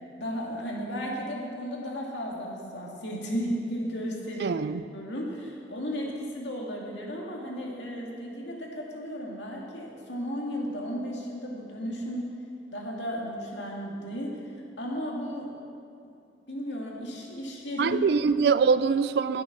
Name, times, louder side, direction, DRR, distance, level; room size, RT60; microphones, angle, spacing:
voice 1, 0.2-4.6 4.9-12.3 12.7-15.5 16.5-18.0, equal, 75° left, -2 dB, 2.1 m, -34 dB
voice 2, 4.4-4.8 17.8-19.4, right 5 dB, 60° right, 14 dB, 0.3 m, -23 dB
12.0 x 8.5 x 5.9 m, 2.5 s
head